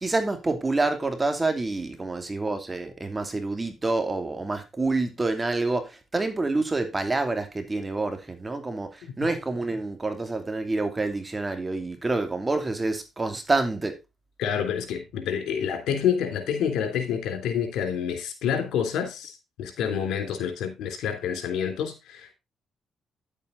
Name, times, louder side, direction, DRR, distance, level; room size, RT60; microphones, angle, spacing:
voice 1, 0.0-8.9 9.2-13.9, right 2 dB, 25° right, 2.7 m, -27 dB
voice 2, 14.4-19.3 19.6-22.3, left 8 dB, 85° left, 3.3 m, -28 dB
10.5 x 8.3 x 3.9 m
cardioid pair, 80°, 0 cm